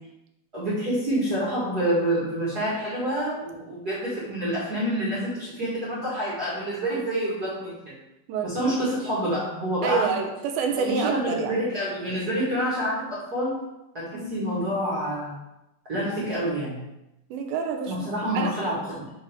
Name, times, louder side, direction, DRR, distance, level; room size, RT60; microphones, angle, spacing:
voice 1, 0.5-8.0 8.4-10.2 10.8-13.6 13.9-15.4 15.9-16.8 17.9-19.0, right 1 dB, 40° right, -8 dB, 1.5 m, -27 dB
voice 2, 8.3-8.8 9.8-11.6 14.1-14.3 17.3-18.1 18.3-18.5, right 6 dB, 80° right, 4 dB, 2.5 m, -28 dB
8.2 x 3.0 x 4.9 m, 0.92 s
omnidirectional pair, 4.4 m